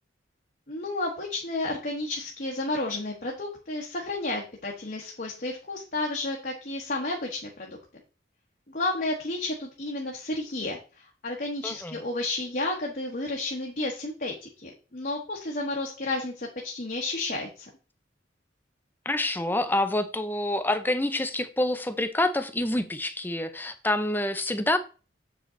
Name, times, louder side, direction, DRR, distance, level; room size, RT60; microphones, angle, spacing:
voice 1, 0.7-7.8 8.7-17.7, left 2 dB, 45° left, 1.3 m, -32 dB
voice 2, 11.6-12.0 19.1-24.8, left 1 dB, 10° left, 0.6 m, -27 dB
7.6 x 5.2 x 3.9 m
head